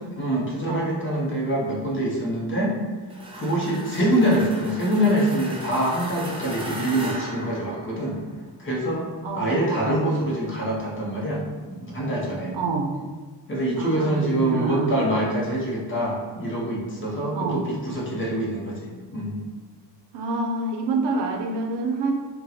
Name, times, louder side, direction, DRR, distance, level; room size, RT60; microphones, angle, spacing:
voice 1, 0.0-2.7 3.3-8.2 8.6-9.1 9.3-12.5 13.5-18.8 19.1-19.4, right 1 dB, 30° left, -4 dB, 0.7 m, -25 dB
sound 1, 3.1-8.3, right 1 dB, 15° right, 0.4 m, -37 dB
voice 2, 9.2-10.1 12.5-12.9 13.8-14.9 17.3-17.6 20.1-22.1, right 3 dB, 85° right, 2 dB, 0.6 m, -27 dB
2.8 x 2.2 x 3.9 m, 1.4 s
wide cardioid pair, 140°, 41 cm